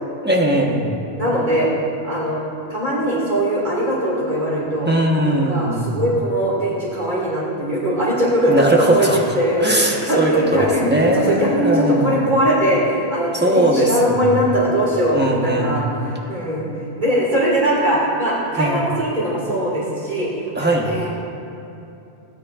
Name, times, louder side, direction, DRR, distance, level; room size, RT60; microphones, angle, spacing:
voice 1, 0.2-0.9 4.8-6.0 8.5-9.2 9.6-12.2 13.3-14.2 15.1-15.8 18.6-18.8 20.5-20.9, right 1 dB, 10° right, -2 dB, 1.1 m, -19 dB
voice 2, 1.2-1.7 2.0-2.4 2.7-4.9 5.2-9.1 9.3-16.7 17.0-20.3 20.6-21.1, right 1 dB, 45° right, -7 dB, 2.4 m, -21 dB
17.0 x 9.8 x 2.5 m, 2.8 s
omnidirectional pair, 1.1 m